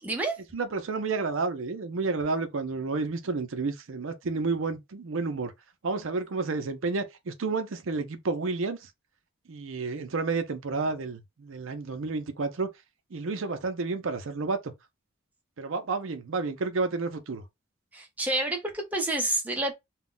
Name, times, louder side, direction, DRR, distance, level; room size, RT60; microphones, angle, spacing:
voice 1, 0.0-0.4 17.9-19.7, right 2 dB, 5° right, 0.6 m, -29 dB
voice 2, 0.5-5.5 5.8-8.9 9.5-12.7 13.1-14.7 15.6-17.4, right 3 dB, 65° right, 0.5 m, -30 dB
2.3 x 2.1 x 3.7 m
head